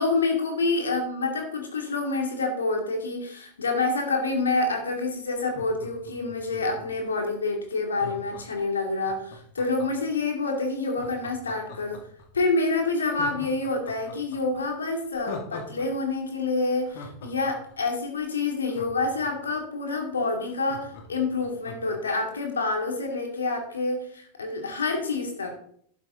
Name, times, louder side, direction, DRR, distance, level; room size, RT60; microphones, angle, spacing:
voice 1, 0.0-12.0 12.3-25.5, left 3 dB, 70° left, 3 dB, 2.3 m, -27 dB
Laughter, 5.4-7.1 7.9-10.1 10.8-12.2 12.6-12.7 13.1-15.9 16.1-16.2 16.6-19.5 19.9-20.0 20.2-22.0 22.4-22.5, left 4 dB, 50° left, 1.9 m, -42 dB
11.5 x 7.5 x 3.8 m, 0.64 s
figure-of-eight pair, 90°, 0 cm